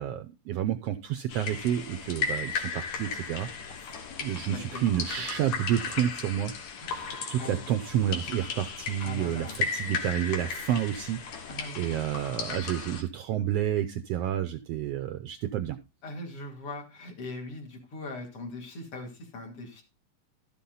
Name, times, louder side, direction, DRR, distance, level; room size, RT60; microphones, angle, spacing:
voice 1, 0.0-3.5 4.2-6.5 7.3-11.2 11.7-15.8, right 11 dB, 75° right, 10 dB, 1.5 m, -29 dB
sound 1, 1.3-13.0, left 5 dB, 75° left, 2.7 m, -36 dB
voice 2, 3.7-4.0 4.5-4.8 6.8-7.7 9.0-9.6 11.5-12.0 16.0-19.8, left 2 dB, 50° left, 1 dB, 3.1 m, -41 dB
12.5 x 7.1 x 3.8 m, 0.28 s
omnidirectional pair, 3.3 m